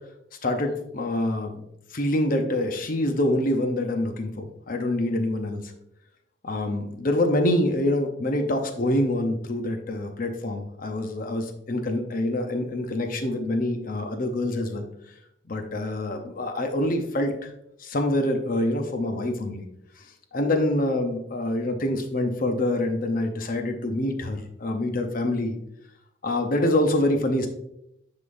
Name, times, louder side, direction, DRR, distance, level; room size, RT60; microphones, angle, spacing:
voice 1, 0.4-1.6 1.9-5.7 6.4-14.9 15.5-17.5 17.8-19.6 20.0-20.1 20.3-25.6 26.2-27.5, left 1 dB, 45° left, 5 dB, 0.7 m, -26 dB
9.8 x 3.7 x 2.6 m, 0.79 s
head